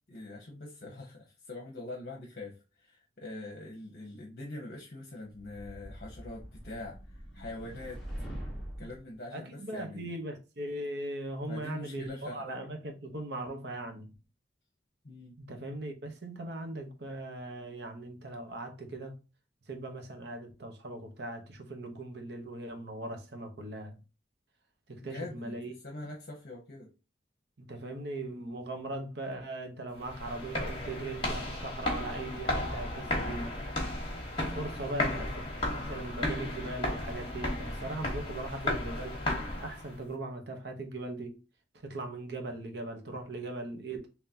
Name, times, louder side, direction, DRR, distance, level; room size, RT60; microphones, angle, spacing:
voice 1, 0.1-8.0 8.8-10.1 11.5-12.5 15.0-15.4 25.0-25.6 25.8-26.9 34.8-35.3, left 2 dB, 50° left, 0.8 m, -44 dB
sound 1, 5.4-9.0, equal, ahead, 1.1 m, -43 dB
voice 2, 9.3-14.1 15.4-19.2 19.7-24.0 24.9-25.7 27.6-33.5 34.5-35.3 35.6-39.2 39.6-41.4 41.8-44.1, right 2 dB, 65° right, 0.9 m, -39 dB
sound 2, 30.0-40.0, left 1 dB, 30° left, 1.2 m, -34 dB
3.8 x 2.9 x 2.7 m
head